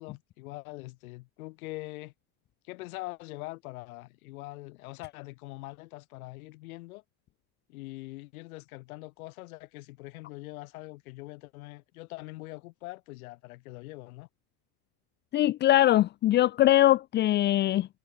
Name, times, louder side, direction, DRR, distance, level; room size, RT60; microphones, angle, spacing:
voice 1, 0.0-2.1 2.6-7.0 7.7-14.3, left 21 dB, 65° left, 7.1 m, -43 dB
voice 2, 15.3-17.9, left 14 dB, 25° left, 1.0 m, -22 dB
supercardioid pair, 170°, 45 cm